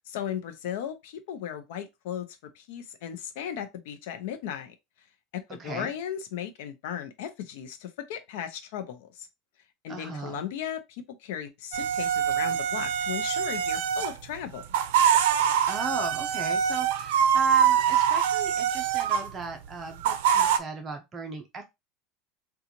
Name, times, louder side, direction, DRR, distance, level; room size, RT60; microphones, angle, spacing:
voice 1, 0.1-2.3 2.5-4.7 5.3-9.3 9.8-14.6, left 9 dB, 75° left, 0.6 m, -36 dB
voice 2, 5.5-5.9 9.9-10.4 15.7-21.7, right 3 dB, 25° right, 0.7 m, -37 dB
sound 1, 11.7-14.2 14.6-19.3 20.0-20.6, right 8 dB, 85° right, 0.5 m, -24 dB
3.8 x 2.4 x 2.8 m
supercardioid pair, 155°, 0 cm